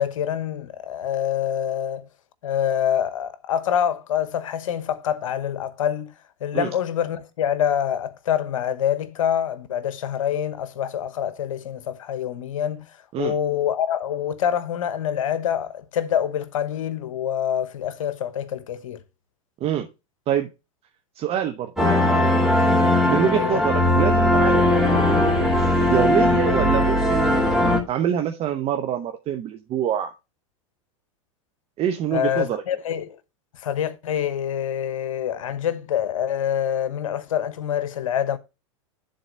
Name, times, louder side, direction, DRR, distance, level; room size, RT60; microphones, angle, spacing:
voice 1, 0.0-2.1 2.4-6.1 6.4-12.9 13.2-19.0 23.4-23.6 32.1-33.2 33.6-38.4, left 9 dB, 80° left, 1.0 m, -26 dB
voice 2, 21.1-22.1 23.0-25.1 25.8-27.5 27.9-30.1 31.8-32.6, right 10 dB, 35° right, 0.9 m, -25 dB
sound 1, 21.8-27.8, left 1 dB, ahead, 2.7 m, -19 dB
10.0 x 4.1 x 5.2 m
hypercardioid pair, 110°, 17 cm